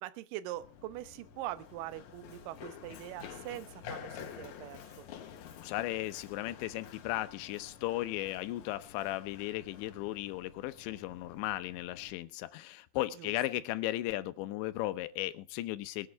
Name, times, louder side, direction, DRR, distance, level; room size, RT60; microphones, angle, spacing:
voice 1, 0.0-5.1 13.2-13.3, right 15 dB, 80° right, 13 dB, 1.9 m, -43 dB
Run, 0.6-12.1, left 8 dB, 65° left, 1.9 m, -50 dB
voice 2, 5.4-16.1, left 16 dB, 85° left, 13 dB, 3.1 m, -36 dB
21.5 x 8.4 x 4.6 m, 0.33 s
omnidirectional pair, 5.2 m